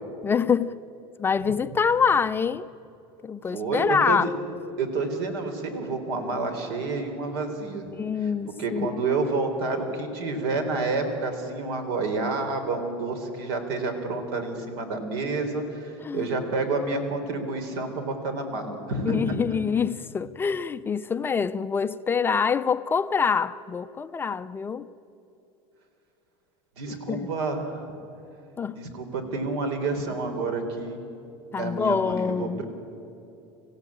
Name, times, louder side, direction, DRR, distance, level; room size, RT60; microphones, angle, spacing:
voice 1, 0.2-0.8 1.2-2.7 3.2-4.3 7.9-9.0 16.0-16.3 19.1-24.9 26.9-27.3 28.6-28.8 31.5-32.6, left 6 dB, 15° left, 0.4 m, -25 dB
voice 2, 3.5-4.3 4.8-7.8 8.6-19.4 26.8-27.9 28.7-31.0 31.6-32.6, right 3 dB, 80° right, 3.7 m, -29 dB
25.5 x 16.0 x 8.7 m
supercardioid pair, 145°, 13 cm